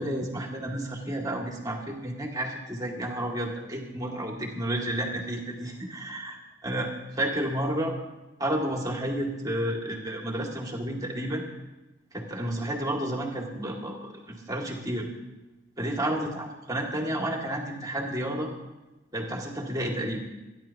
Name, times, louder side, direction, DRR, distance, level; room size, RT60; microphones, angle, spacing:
voice 1, 0.0-6.4 6.6-6.9 7.2-7.9 8.4-11.4 12.1-15.1 15.8-18.5 19.1-20.2, right 1 dB, 20° right, -1 dB, 2.3 m, -31 dB
27.5 x 11.0 x 3.0 m, 1.1 s
head